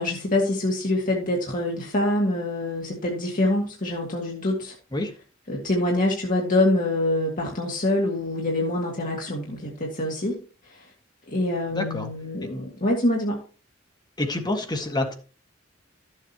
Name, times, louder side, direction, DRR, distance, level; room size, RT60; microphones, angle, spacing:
voice 1, 0.0-4.8 5.5-10.4 10.6-10.9 11.3-13.4, left 1 dB, 45° left, -2 dB, 2.1 m, -25 dB
voice 2, 11.8-12.1 14.2-15.1, left 2 dB, 20° left, 4 dB, 1.7 m, -27 dB
13.5 x 7.6 x 2.9 m, 0.37 s
head